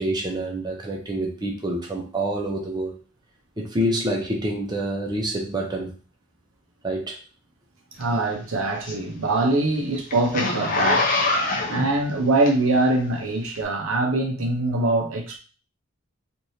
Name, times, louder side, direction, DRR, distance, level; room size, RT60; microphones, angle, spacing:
voice 1, 0.0-3.0 3.6-5.9 6.8-7.2, right 1 dB, 20° right, 0.7 m, -27 dB
Zipper (clothing), 8.0-12.9 13.5-13.6, left 2 dB, 40° left, 0.7 m, -25 dB
voice 2, 8.0-11.1 11.7-15.4, right 2 dB, 85° right, 0.7 m, -23 dB
3.2 x 2.6 x 2.7 m
head